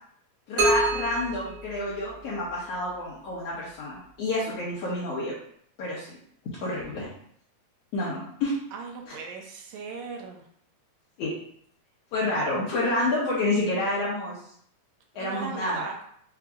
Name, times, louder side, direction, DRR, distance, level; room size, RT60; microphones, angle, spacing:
voice 1, 0.5-5.4 5.8-6.1 6.6-7.1 7.9-8.5 9.1-9.2 11.2-11.3 12.1-14.4 15.1-15.8, left 2 dB, 70° left, -7 dB, 1.7 m, -28 dB
sound 1, 0.6-2.5, right 2 dB, 60° right, 1.6 m, -27 dB
voice 2, 8.7-10.4 15.1-16.0, right 5 dB, 80° right, 2 dB, 2.0 m, -37 dB
5.8 x 2.0 x 3.5 m, 0.66 s
omnidirectional pair, 3.4 m